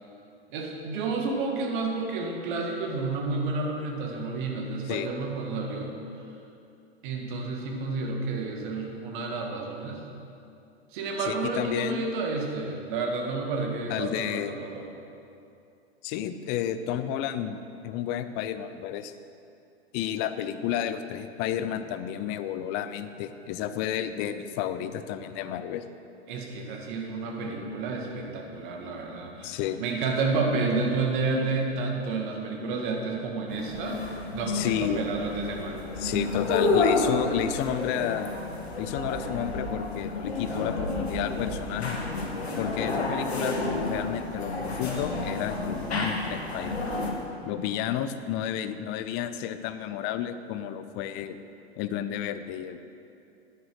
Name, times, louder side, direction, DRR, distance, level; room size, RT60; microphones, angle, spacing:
voice 1, 0.5-6.0 7.0-10.1 10.9-14.9 26.3-34.0 34.3-35.8, right 3 dB, 50° right, 1 dB, 1.9 m, -30 dB
voice 2, 11.3-12.1 13.9-14.6 16.0-17.6 17.8-19.1 19.9-25.8 29.4-29.8 34.5-35.1 36.0-38.3 38.8-42.0 42.6-43.6 43.9-46.8 47.4-51.4 51.8-52.8, left 10 dB, 35° left, 11 dB, 0.6 m, -31 dB
sound 1, 33.5-47.1, left 3 dB, 75° left, 1.7 m, -30 dB
10.5 x 9.1 x 4.8 m, 2.6 s
figure-of-eight pair, 100°, 32 cm